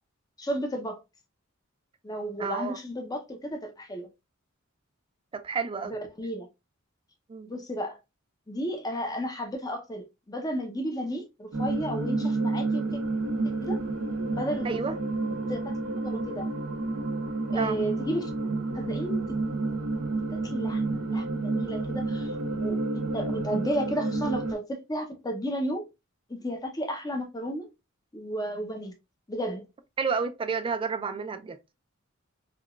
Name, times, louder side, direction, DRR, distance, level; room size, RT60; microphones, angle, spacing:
voice 1, 0.4-1.0 2.0-4.1 5.9-6.5 7.5-8.0 8.5-13.0 13.6-13.8 14.3-14.8 15.5-15.7 16.0-16.5 17.5-18.3 18.7-19.2 20.4-25.8 26.3-27.7 28.1-28.9 29.3-29.7, equal, 20° left, 0.6 m, -33 dB
voice 2, 2.4-2.8 5.3-6.0 7.3-7.5 14.6-15.0 17.5-17.8 30.0-31.6, right 5 dB, 25° right, 0.3 m, -30 dB
sound 1, 11.5-24.5, right 3 dB, 90° right, 0.8 m, -30 dB
3.7 x 2.3 x 2.3 m
head